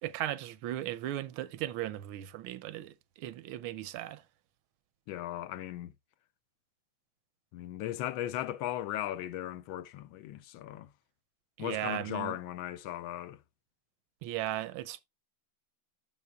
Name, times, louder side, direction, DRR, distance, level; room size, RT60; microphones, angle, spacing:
voice 1, 0.0-4.2 11.6-12.4 14.2-15.0, right 13 dB, 85° right, 1.4 m, -37 dB
voice 2, 5.1-5.9 7.5-10.9 11.6-13.4, left 13 dB, 75° left, 1.3 m, -37 dB
9.5 x 7.3 x 2.3 m
omnidirectional pair, 2.2 m